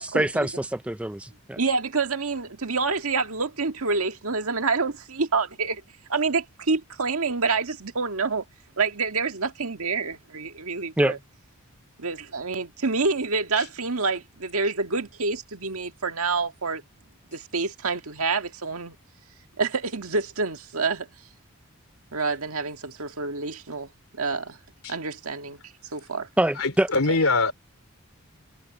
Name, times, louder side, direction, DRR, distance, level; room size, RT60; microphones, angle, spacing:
voice 1, 0.0-1.6 11.0-11.2 26.4-26.9, right 1 dB, 5° right, 0.3 m, -25 dB
voice 2, 1.6-5.8 6.1-8.4 8.8-11.2 12.0-16.8 17.3-18.9 19.6-21.1 22.1-23.9 24.2-24.6 24.9-25.6 25.9-26.3, right 4 dB, 80° right, 1.8 m, -27 dB
voice 3, 26.6-27.5, left 3 dB, 75° left, 3.1 m, -23 dB
head